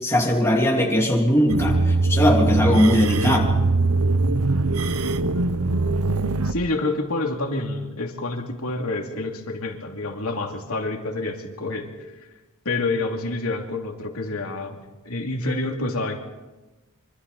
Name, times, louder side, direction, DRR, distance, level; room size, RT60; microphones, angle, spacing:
voice 1, 0.0-3.5, equal, 10° left, -1 dB, 3.1 m, -19 dB
sound 1, 1.5-6.5, right 3 dB, 85° right, 0.9 m, -21 dB
voice 2, 6.4-12.1 12.6-16.2, left 2 dB, 80° left, 2 dB, 2.8 m, -28 dB
25.5 x 25.0 x 4.2 m, 1.1 s
head